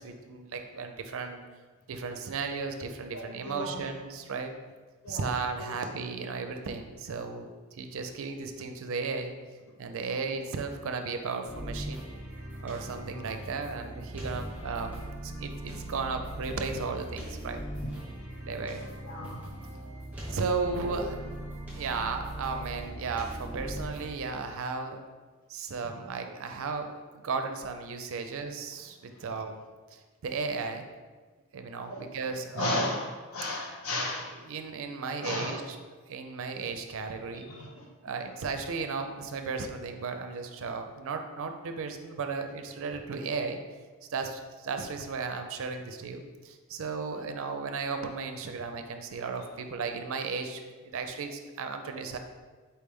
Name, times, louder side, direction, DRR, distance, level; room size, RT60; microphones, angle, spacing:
voice 1, 0.0-1.4 1.9-4.5 5.1-9.3 9.8-12.1 12.6-17.6 18.4-18.9 20.3-21.1 21.7-25.1 25.5-29.6 29.9-30.9 31.5-32.9 33.7-34.0 34.5-35.8 36.1-37.5 38.0-43.6 44.1-52.2, right 4 dB, 65° right, 6 dB, 0.4 m, -35 dB
voice 2, 3.1-3.9 5.0-5.2 5.6-5.7 17.7-17.9 19.0-20.0 20.8-21.0 25.8-25.9 29.1-29.2 31.9-34.4 35.2-35.6 37.5-37.9 49.2-49.3, left 2 dB, 70° left, -1 dB, 0.9 m, -36 dB
sound 1, 11.4-24.1, right 1 dB, 5° right, 0.9 m, -40 dB
4.4 x 3.3 x 3.5 m, 1.4 s
head